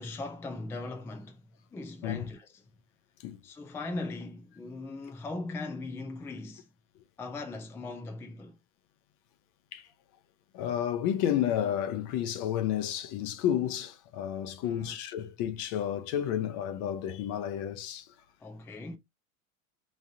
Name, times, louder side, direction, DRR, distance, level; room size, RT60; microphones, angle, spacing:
voice 1, 0.0-1.4 1.7-2.6 3.4-6.7 7.2-8.6 14.6-15.0 18.4-19.0, left 2 dB, 5° left, 0.4 m, -39 dB
voice 2, 10.5-18.1, left 10 dB, 50° left, 0.8 m, -31 dB
3.7 x 3.2 x 2.7 m
supercardioid pair, 130°, 40 cm